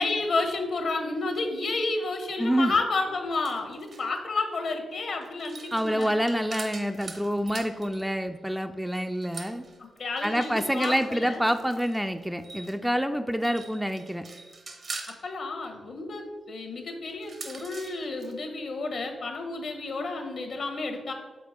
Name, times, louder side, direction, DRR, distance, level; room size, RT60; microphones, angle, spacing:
voice 1, 0.0-6.1 10.0-11.4 15.2-21.1, left 3 dB, 65° left, 5 dB, 1.1 m, -31 dB
voice 2, 2.4-2.7 5.7-9.6 10.2-14.2, equal, 5° right, 7 dB, 0.4 m, -27 dB
sound 1, 3.3-4.2 5.2-8.1 8.9-12.8 13.3-15.2 17.1-18.3, right 3 dB, 60° right, 0.9 m, -43 dB
5.2 x 4.0 x 5.0 m, 1.4 s
hypercardioid pair, 45°, 0 cm